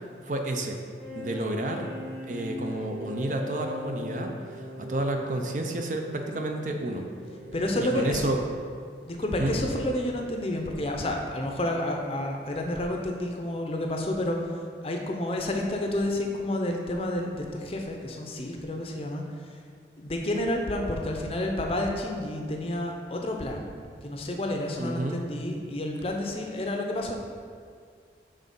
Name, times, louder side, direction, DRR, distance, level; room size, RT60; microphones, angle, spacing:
voice 1, 0.2-0.8 1.2-1.9 2.3-7.1 7.8-8.4 9.4-9.6 24.8-25.2, right 1 dB, 45° right, 3 dB, 0.5 m, -30 dB
sound 1, 1.0-8.6, left 1 dB, ahead, 0.8 m, -40 dB
voice 2, 7.5-8.3 9.1-19.3 20.0-27.2, left 1 dB, 30° left, 2 dB, 0.6 m, -30 dB
6.3 x 3.8 x 5.3 m, 2.1 s
head